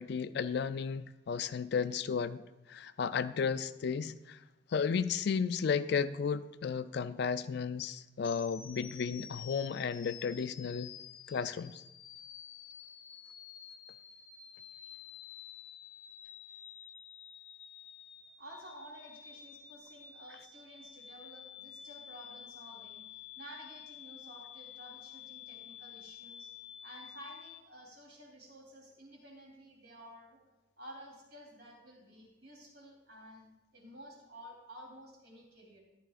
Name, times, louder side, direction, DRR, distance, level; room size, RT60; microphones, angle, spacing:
voice 1, 0.0-2.4 2.7-4.4 4.7-10.9 11.3-11.8, left 6 dB, 55° left, 0.3 m, -33 dB
sound 1, 8.2-27.6, left 9 dB, 85° left, 0.9 m, -51 dB
voice 2, 18.4-26.5 26.8-30.4 30.8-33.4 33.7-35.8, equal, 55° right, 3.2 m, -52 dB
14.0 x 11.0 x 2.5 m
head